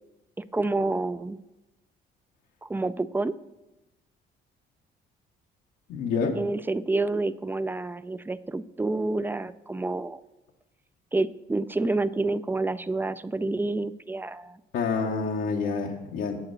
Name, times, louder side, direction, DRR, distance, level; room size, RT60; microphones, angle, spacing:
voice 1, 0.4-1.4 2.6-3.3 6.4-10.2 11.1-14.6, right 2 dB, 10° right, 15 dB, 0.4 m, -28 dB
voice 2, 5.9-6.3 14.7-16.4, left 5 dB, 85° left, -1 dB, 1.1 m, -27 dB
8.5 x 7.8 x 6.3 m, 0.99 s
cardioid pair, 90°, 20 cm